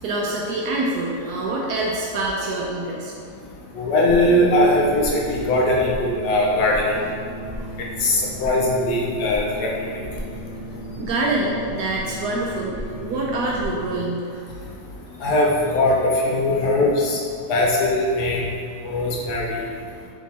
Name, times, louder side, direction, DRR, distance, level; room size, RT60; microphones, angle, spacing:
voice 1, 0.0-3.1 7.5-7.7 11.0-14.4, right 2 dB, 70° right, -3 dB, 0.9 m, -26 dB
voice 2, 3.7-6.9 8.0-9.7 15.2-17.2 17.5-18.5 18.8-19.6, left 1 dB, 70° left, -3 dB, 1.0 m, -20 dB
sound 1, 4.1-14.0, equal, 20° left, 1.5 m, -34 dB
3.7 x 3.5 x 4.1 m, 2.3 s
omnidirectional pair, 2.0 m